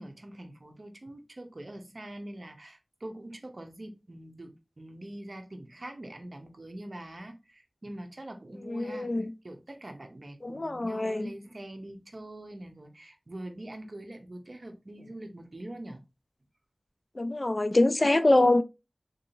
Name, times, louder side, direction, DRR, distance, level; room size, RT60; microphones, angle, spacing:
voice 1, 0.0-16.0, right 1 dB, 55° right, 0.7 m, -44 dB
voice 2, 8.6-9.3 10.4-11.3 17.2-18.6, left 2 dB, 45° left, 0.3 m, -24 dB
3.8 x 2.7 x 2.6 m
wide cardioid pair, 50°, 0 cm